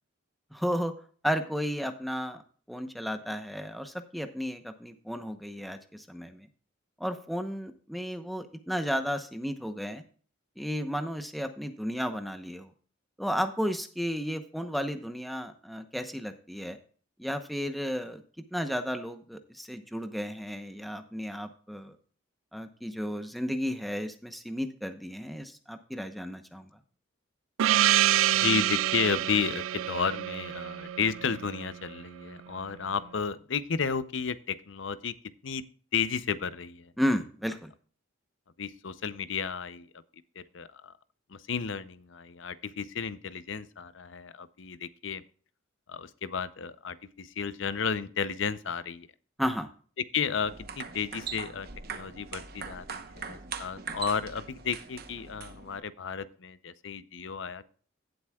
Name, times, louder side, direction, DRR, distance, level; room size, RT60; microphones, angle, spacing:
voice 1, 0.5-0.9 1.2-2.4 2.7-6.5 7.0-10.0 10.6-12.7 13.2-16.8 17.2-18.2 18.5-21.9 22.5-26.7 37.0-37.7 49.4-49.7, equal, ahead, 7 dB, 0.8 m, -33 dB
Gong, 27.6-31.9, right 13 dB, 85° right, 0.3 m, -27 dB
voice 2, 28.3-35.2 35.4-36.9 38.6-40.0 40.4-40.9 41.3-45.2 45.9-49.1 50.0-57.7, left 6 dB, 70° left, 15 dB, 0.6 m, -33 dB
sound 1, 50.4-55.8, right 5 dB, 50° right, 0.9 m, -41 dB
16.5 x 7.9 x 2.3 m, 0.43 s
head